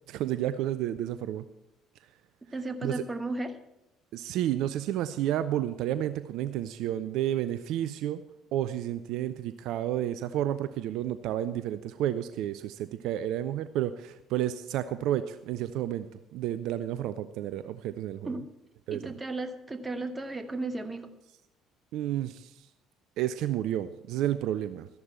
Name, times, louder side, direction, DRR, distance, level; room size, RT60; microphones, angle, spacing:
voice 1, 0.1-1.4 2.8-3.0 4.1-8.2 8.5-16.1 16.3-18.4 18.9-19.1 21.9-22.7 23.2-24.9, right 12 dB, 60° right, 13 dB, 0.4 m, -31 dB
voice 2, 2.5-3.6 18.2-18.5 18.9-21.1, right 2 dB, 20° right, 9 dB, 1.3 m, -34 dB
13.5 x 11.0 x 4.4 m, 0.89 s
figure-of-eight pair, 55°, 0 cm